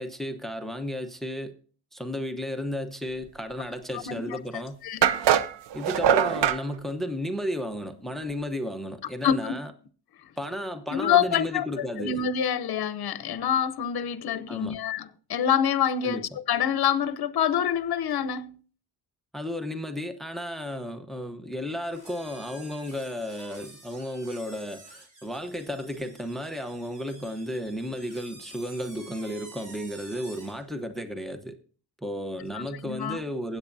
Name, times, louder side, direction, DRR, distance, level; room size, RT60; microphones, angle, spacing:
voice 1, 0.0-1.6 1.9-4.8 5.7-9.7 10.4-12.2 14.5-14.8 16.0-16.3 19.3-31.6 32.0-33.6, equal, ahead, 0.9 m, -33 dB
voice 2, 4.1-4.4 4.8-5.2 9.2-9.6 10.9-18.6 32.5-33.2, left 8 dB, 60° left, 0.8 m, -26 dB
sound 1, 4.2-4.3 5.0-6.6, right 9 dB, 90° right, 0.7 m, -22 dB
sound 2, 21.8-30.6, right 2 dB, 50° right, 3.2 m, -49 dB
16.0 x 8.5 x 2.7 m
cardioid pair, 100°, 41 cm